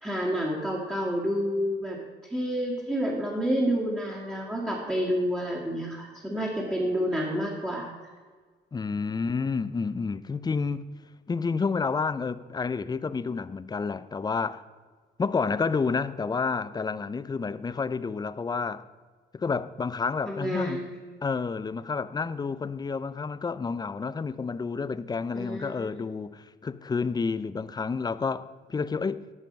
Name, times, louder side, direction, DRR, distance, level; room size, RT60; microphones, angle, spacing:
voice 1, 0.0-2.0 2.3-7.9 20.3-20.9 25.3-26.0, equal, 10° right, 2.0 m, -29 dB
voice 2, 8.7-10.9 11.3-14.6 15.2-18.9 19.3-20.8 21.2-29.3, left 4 dB, 20° left, 0.4 m, -30 dB
13.0 x 5.4 x 5.3 m
cardioid pair, 90°, 20 cm